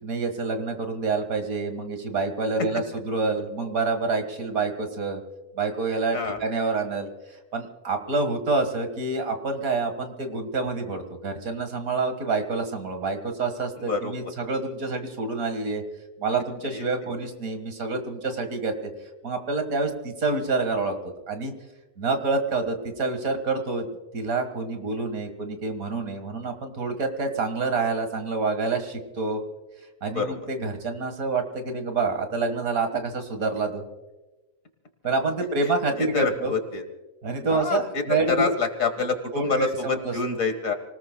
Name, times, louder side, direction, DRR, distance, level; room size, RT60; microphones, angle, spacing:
voice 1, 0.0-5.2 5.6-15.8 16.2-18.9 19.2-20.9 21.3-21.5 22.0-23.9 24.1-29.4 30.0-33.8 35.0-36.5 37.2-38.5 39.3-40.2, right 3 dB, 75° right, 7 dB, 2.1 m, -27 dB
voice 2, 36.0-36.8 37.5-39.2 39.4-40.7, left 4 dB, 65° left, 8 dB, 1.9 m, -26 dB
29.0 x 19.5 x 2.2 m, 1.1 s
omnidirectional pair, 1.5 m